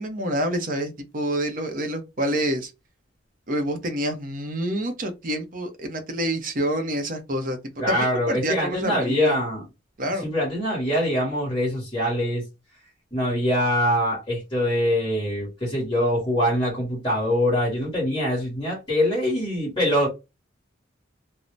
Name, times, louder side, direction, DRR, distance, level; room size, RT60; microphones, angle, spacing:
voice 1, 0.0-2.7 3.5-7.6 7.9-9.4 10.0-10.3, equal, 45° right, 0.6 m, -27 dB
voice 2, 7.8-9.6 10.2-12.4 13.1-20.1, equal, 25° left, 1.1 m, -24 dB
2.5 x 2.0 x 3.2 m
head